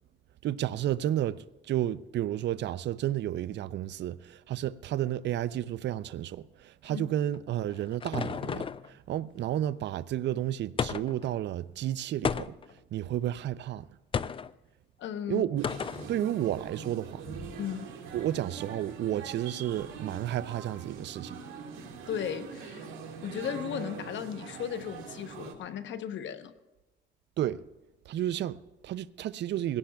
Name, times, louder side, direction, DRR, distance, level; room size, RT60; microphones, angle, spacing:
voice 1, 0.4-13.9 15.3-15.7 16.1-17.3 18.1-21.5 27.4-27.6 28.1-29.8, right 12 dB, 65° right, 0.5 m, -32 dB
sound 1, 7.3-8.9 10.8-11.3 12.2-12.8 14.1-14.5 15.6-16.1, left 6 dB, 25° left, 0.4 m, -32 dB
voice 2, 15.0-15.5 17.6-17.9 22.1-22.9 23.2-26.5, left 9 dB, 70° left, 1.0 m, -36 dB
sound 2, 15.6-25.5, right 5 dB, 85° right, 1.8 m, -43 dB
21.0 x 17.0 x 2.3 m
cardioid pair, 90°, 20 cm